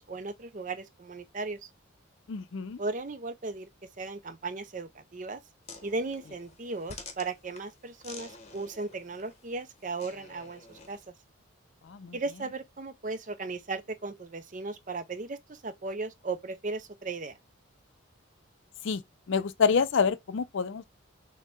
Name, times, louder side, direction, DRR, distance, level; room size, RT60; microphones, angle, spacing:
voice 1, 0.0-1.7 2.8-3.7 4.0-5.4 5.8-11.0 12.1-17.4, right 3 dB, 35° right, 0.5 m, -36 dB
voice 2, 2.3-2.8 11.9-12.2 18.8-19.0 19.3-20.9, left 5 dB, 60° left, 0.4 m, -27 dB
sound 1, 5.6-11.1, left 4 dB, 30° left, 0.8 m, -49 dB
6.4 x 2.2 x 3.6 m
head